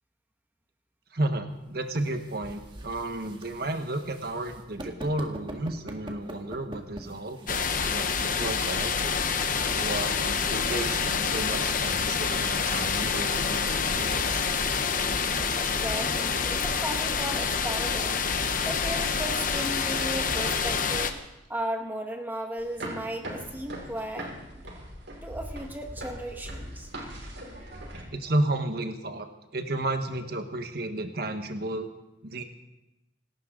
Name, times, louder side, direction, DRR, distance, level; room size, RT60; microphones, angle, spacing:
voice 1, 1.1-9.2 9.7-14.4 28.1-29.3 29.5-31.9 32.2-32.4, right 1 dB, 55° right, 6 dB, 1.4 m, -32 dB
sound 1, 1.5-15.4, right 1 dB, 25° right, 1.8 m, -47 dB
sound 2, 7.5-21.1, left 5 dB, 45° left, 1.1 m, -27 dB
voice 2, 15.5-18.2 18.6-21.1 21.5-24.6 25.2-26.9, right 1 dB, 10° right, 3 dB, 1.8 m, -36 dB
sound 3, 22.6-28.0, right 1 dB, 90° right, 5.7 m, -40 dB
27.0 x 12.5 x 4.0 m, 0.97 s
head